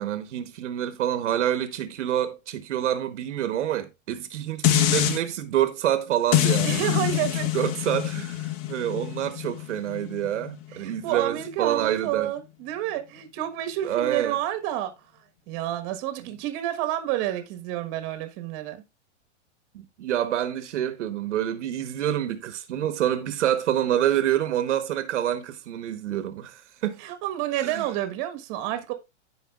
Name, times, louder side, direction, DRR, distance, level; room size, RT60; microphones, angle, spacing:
voice 1, 0.0-7.1 7.5-12.3 13.8-14.4 16.2-16.3 19.7-27.0 27.6-27.9, right 11 dB, 75° right, 1.2 m, -27 dB
sound 1, 4.6-5.2 6.3-11.5 11.9-12.0, left 14 dB, 35° left, 0.8 m, -26 dB
voice 2, 6.6-7.5 10.7-14.9 15.5-18.8 27.0-28.9, right 13 dB, 40° right, 1.4 m, -29 dB
14.5 x 5.0 x 2.4 m
hypercardioid pair, 135°, 36 cm